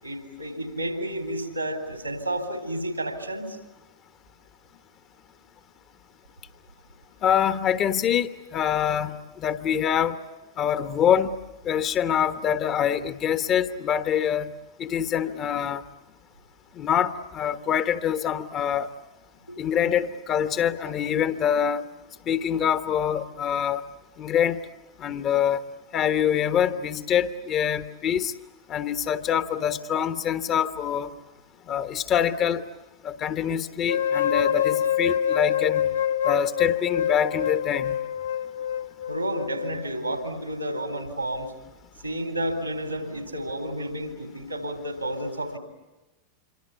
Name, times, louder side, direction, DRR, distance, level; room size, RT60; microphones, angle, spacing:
voice 1, 0.0-3.6 19.5-19.6 39.1-41.5 42.0-45.6, right 1 dB, 85° right, 6 dB, 3.9 m, -31 dB
voice 2, 7.2-10.2 10.6-11.4 11.6-14.5 14.8-15.8 16.8-18.9 19.6-21.8 22.3-23.8 24.2-24.6 25.0-25.6 25.9-28.3 28.7-31.1 31.7-32.6 33.0-35.9 36.2-38.0, left 9 dB, 30° left, 11 dB, 1.3 m, -25 dB
sound 1, 33.9-39.9, left 9 dB, 70° left, 0.9 m, -26 dB
27.0 x 24.5 x 8.3 m, 1.1 s
figure-of-eight pair, 90°, 0 cm